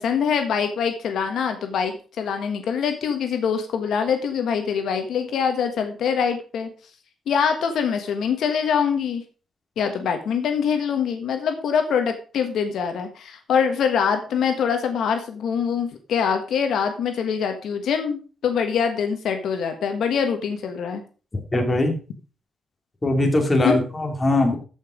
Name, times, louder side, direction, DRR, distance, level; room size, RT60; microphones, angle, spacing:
voice 1, 0.0-6.7 7.3-9.2 9.8-21.0 23.6-23.8, left 7 dB, 70° left, 6 dB, 1.5 m, -24 dB
voice 2, 21.5-21.9 23.0-24.6, left 1 dB, 20° left, 2 dB, 2.8 m, -20 dB
14.5 x 5.7 x 5.0 m, 0.37 s
cardioid pair, 140°, 0 cm